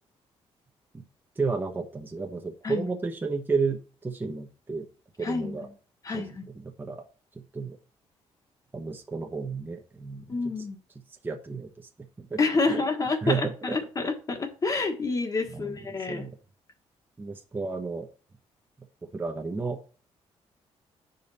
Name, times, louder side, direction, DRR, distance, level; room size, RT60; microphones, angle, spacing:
voice 1, 1.4-4.9 5.2-5.7 6.1-6.3 6.6-7.0 7.3-7.8 8.7-10.2 11.2-11.9 12.2-12.4 12.6-12.8 13.2-13.8 15.5-15.8 16.1-16.3 17.2-18.1 19.1-19.8, right 4 dB, 20° right, 3 dB, 0.9 m, -32 dB
voice 2, 5.2-5.6 6.0-6.5 10.3-10.8 12.4-16.3, left 3 dB, 30° left, 6 dB, 1.4 m, -28 dB
10.5 x 5.2 x 4.1 m, 0.41 s
cardioid pair, 130°, 11 cm